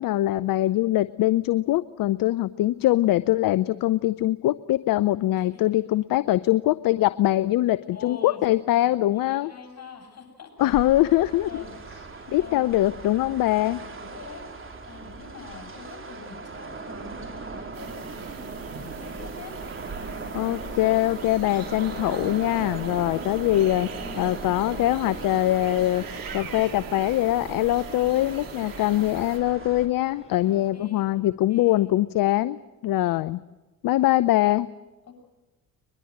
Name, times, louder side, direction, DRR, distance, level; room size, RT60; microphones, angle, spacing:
voice 1, 0.0-9.5 10.6-11.6 12.3-13.8 20.3-23.9 24.2-26.0 26.3-33.4 33.8-34.7, left 15 dB, 55° left, 17 dB, 0.7 m, -23 dB
voice 2, 5.3-5.8 7.7-10.7 11.5-11.8 12.1-12.7 13.8-19.6 24.0-24.4 28.7-29.0 30.4-31.0 31.5-31.8 35.1-35.2, left 5 dB, 40° left, 3 dB, 7.8 m, -45 dB
sound 1, 10.6-29.9, right 4 dB, 30° right, 3.4 m, -38 dB
sound 2, 17.7-29.4, right 6 dB, 50° right, 3.3 m, -43 dB
sound 3, 20.1-30.7, left 2 dB, 15° left, 7.8 m, -51 dB
21.5 x 21.5 x 8.0 m, 1.1 s
hypercardioid pair, 55°, 42 cm